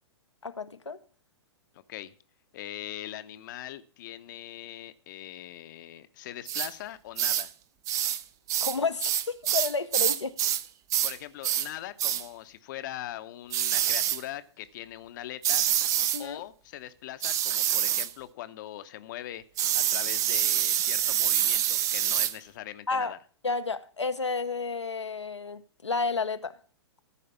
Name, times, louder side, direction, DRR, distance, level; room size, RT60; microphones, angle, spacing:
voice 1, 0.4-1.0 8.6-10.4 16.1-16.4 22.9-23.1 23.4-26.6, left 4 dB, 80° left, 0.7 m, -31 dB
voice 2, 1.7-2.1 2.5-7.5 11.0-15.7 16.2-19.4 19.7-23.2, left 13 dB, 45° left, 0.8 m, -41 dB
sound 1, 6.5-6.7 7.2-7.5 7.9-8.2 8.5-10.6 10.9-11.2 11.4-11.7 12.0-12.2 13.5-14.2 15.4-16.2 17.2-18.1 19.6-22.3, right 11 dB, 25° right, 0.6 m, -26 dB
14.0 x 5.0 x 7.1 m
figure-of-eight pair, 110°, 15 cm